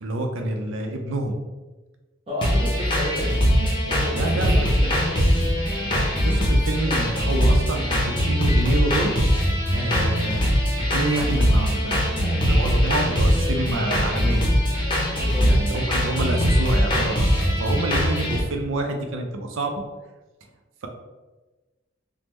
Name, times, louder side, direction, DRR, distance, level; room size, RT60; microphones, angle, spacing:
voice 1, 0.0-1.4 4.2-4.9 6.2-9.1 9.7-10.5 10.9-14.4 15.4-19.8, right 2 dB, 80° right, 4 dB, 0.5 m, -28 dB
voice 2, 2.3-3.4 3.9-5.2 15.1-15.5, equal, 30° right, -6 dB, 0.6 m, -32 dB
sound 1, 2.4-18.4, equal, 25° left, 0.6 m, -21 dB
3.5 x 2.0 x 3.0 m, 1.2 s
head